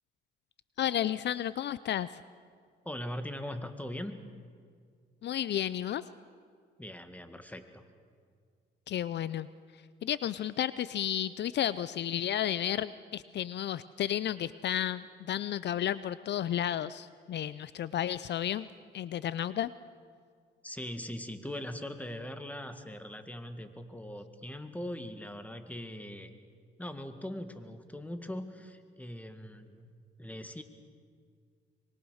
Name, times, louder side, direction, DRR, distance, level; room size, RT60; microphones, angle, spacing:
voice 1, 0.8-2.2 5.2-6.0 8.9-9.5 10.0-18.7 18.9-19.7, left 11 dB, 60° left, 16 dB, 0.5 m, -32 dB
voice 2, 2.9-4.3 6.8-7.8 20.6-26.3 26.8-29.9 30.2-30.6, left 1 dB, 5° left, 8 dB, 1.9 m, -41 dB
24.5 x 22.5 x 6.4 m, 2.1 s
cardioid pair, 90°, 20 cm